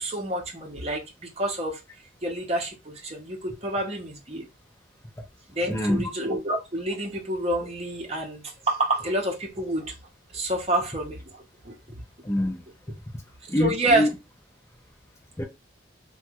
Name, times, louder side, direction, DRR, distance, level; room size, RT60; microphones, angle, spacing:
voice 1, 0.0-1.8 2.2-4.5 5.5-9.9 10.3-11.2 11.6-11.7 13.6-14.1, right 1 dB, 35° right, 0.9 m, -28 dB
voice 2, 5.7-6.1 12.2-12.6 13.5-14.1 15.4-15.5, left 1 dB, 15° left, 0.6 m, -25 dB
3.1 x 2.3 x 2.9 m
head